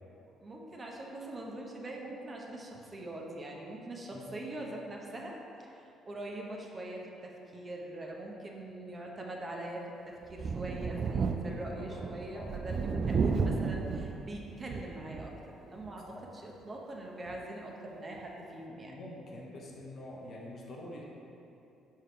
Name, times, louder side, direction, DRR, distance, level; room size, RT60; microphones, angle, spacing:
voice 1, 0.4-18.9, right 1 dB, 35° right, -1 dB, 1.0 m, -43 dB
Thunder, 10.3-15.4 15.9-16.0 17.3-17.4, right 5 dB, 50° right, 0.3 m, -33 dB
voice 2, 11.2-12.0 12.3-12.5 16.1-16.2 18.8-21.0, left 1 dB, 55° left, -2 dB, 1.1 m, -46 dB
5.0 x 4.7 x 4.5 m, 2.8 s
supercardioid pair, 60°, 0 cm